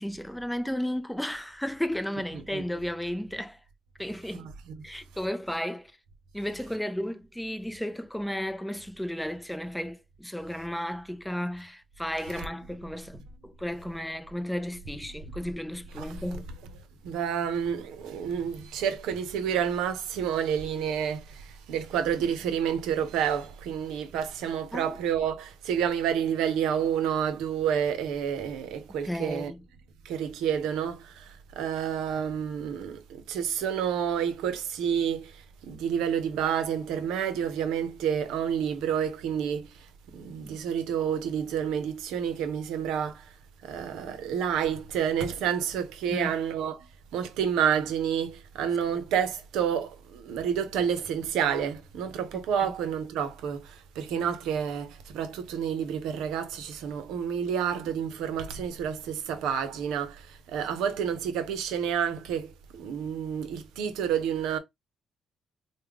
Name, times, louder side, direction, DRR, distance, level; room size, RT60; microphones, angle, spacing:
voice 1, 0.0-3.6 4.0-4.5 4.8-5.9 6.3-16.5 24.7-25.0 29.0-29.6 40.4-40.6 46.1-46.3 54.1-54.2, equal, 5° left, 0.5 m, -34 dB
voice 2, 4.3-4.8 16.0-16.2 17.0-29.5 30.0-43.3 43.6-64.6, right 8 dB, 85° right, 0.6 m, -29 dB
3.4 x 2.2 x 3.4 m
supercardioid pair, 65°, 0 cm